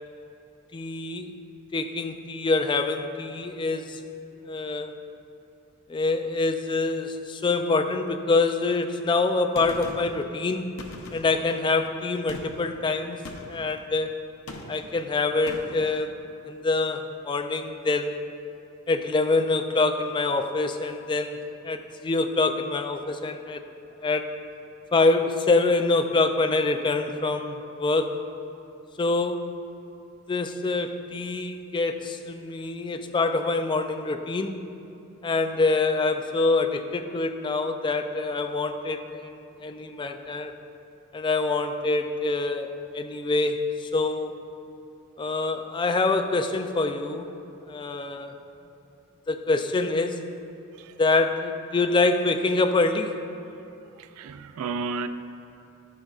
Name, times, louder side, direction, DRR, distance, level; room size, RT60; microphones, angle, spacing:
voice 1, 0.7-1.3 1.7-4.0 4.5-4.9 5.9-10.7 11.1-13.2 13.5-14.2 14.7-16.2 16.5-18.2 18.9-21.4 21.6-23.6 24.0-24.3 24.9-28.2 29.0-29.5 30.3-34.6 35.2-40.5 41.1-44.3 45.2-47.3 47.7-48.3 49.3-50.2 51.0-53.2, left 3 dB, 20° left, 7 dB, 0.3 m, -25 dB
Gunshot gunfire, 9.6-10.2 10.8-11.5 12.3-12.7 13.3-13.7 14.5-15.0 15.5-15.9, left 2 dB, 85° left, 0.7 m, -40 dB
voice 2, 54.0-55.1, right 4 dB, 80° right, 11 dB, 0.4 m, -32 dB
13.5 x 5.3 x 2.4 m, 2.8 s
head